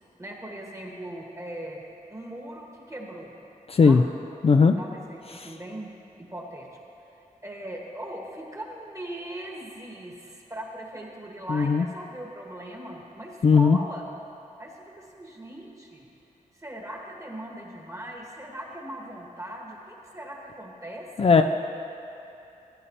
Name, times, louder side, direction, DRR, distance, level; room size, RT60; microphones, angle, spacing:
voice 1, 0.2-1.8 2.1-3.3 3.8-4.0 4.8-5.9 6.2-6.7 7.4-14.0 14.6-16.0 16.5-21.3, right 1 dB, 20° right, -1 dB, 1.5 m, -39 dB
voice 2, 3.7-4.0 4.4-4.8 5.3-5.5 11.5-11.9 13.4-13.8 21.2-21.4, left 5 dB, 45° left, 6 dB, 0.4 m, -18 dB
16.5 x 9.7 x 2.9 m, 2.8 s
wide cardioid pair, 95°, 14 cm